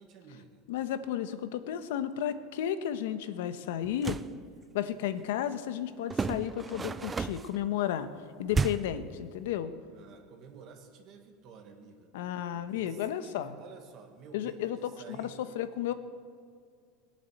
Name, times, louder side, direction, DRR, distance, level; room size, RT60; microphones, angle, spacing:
voice 1, 0.0-0.7 9.9-12.1 12.5-15.4 15.9-16.0, right 5 dB, 35° right, 4 dB, 1.6 m, -52 dB
voice 2, 0.7-4.2 4.7-8.1 8.4-9.7 12.1-13.6 14.3-15.9, left 10 dB, 75° left, 11 dB, 1.1 m, -33 dB
sound 1, 3.8-4.3 6.1-7.6 8.5-9.0, right 5 dB, 10° right, 0.3 m, -32 dB
20.5 x 8.8 x 8.0 m, 2.2 s
supercardioid pair, 175°, 0 cm